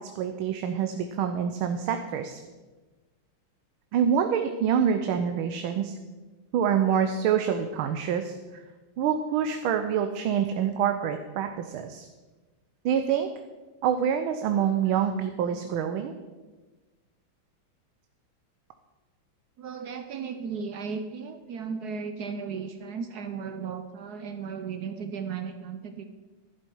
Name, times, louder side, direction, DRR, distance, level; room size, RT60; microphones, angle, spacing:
voice 1, 0.0-2.4 3.9-6.0 6.5-8.6 9.0-12.1 12.8-13.3 13.8-16.1, right 8 dB, 85° right, 6 dB, 1.5 m, -26 dB
voice 2, 19.6-26.0, right 6 dB, 65° right, 7 dB, 1.1 m, -35 dB
11.5 x 11.0 x 4.6 m, 1.2 s
omnidirectional pair, 2.2 m